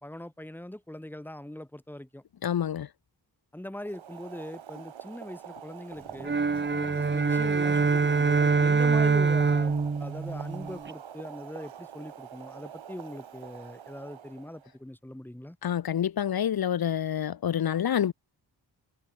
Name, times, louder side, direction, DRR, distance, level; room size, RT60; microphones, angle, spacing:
voice 1, 0.0-2.2 3.5-6.4 6.7-15.6, left 1 dB, 5° left, 1.5 m, -41 dB
voice 2, 2.4-2.9 15.6-18.1, left 9 dB, 55° left, 0.7 m, -27 dB
Boiling, 3.7-14.7, right 9 dB, 90° right, 2.4 m, -46 dB
sound 1, 6.2-10.9, right 4 dB, 25° right, 0.9 m, -24 dB
cardioid pair, 60°, 45 cm